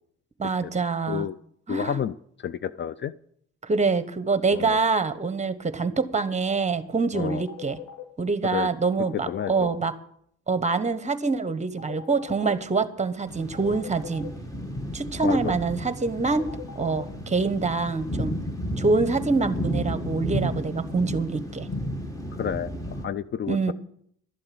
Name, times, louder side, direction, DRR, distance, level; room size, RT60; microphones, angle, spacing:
voice 1, 0.4-1.3 1.7-2.0 3.6-7.8 8.2-9.9 10.5-14.3 14.9-16.5 16.7-18.4 18.8-21.7 23.5-23.7, right 4 dB, 25° right, 12 dB, 1.1 m, -25 dB
voice 2, 1.7-2.1 2.4-3.1 4.5-4.8 7.1-7.4 8.5-8.7 9.3-9.8 15.2-15.6 22.4-23.7, left 9 dB, 40° left, 16 dB, 0.4 m, -30 dB
sound 1, 7.3-8.0 9.0-9.8 11.8-12.5 13.5-14.3 16.3-17.0, left 9 dB, 70° left, 2.8 m, -40 dB
sound 2, 13.3-23.1, equal, 10° left, 1.6 m, -33 dB
12.5 x 7.7 x 7.8 m, 0.68 s
cardioid pair, 90°, 30 cm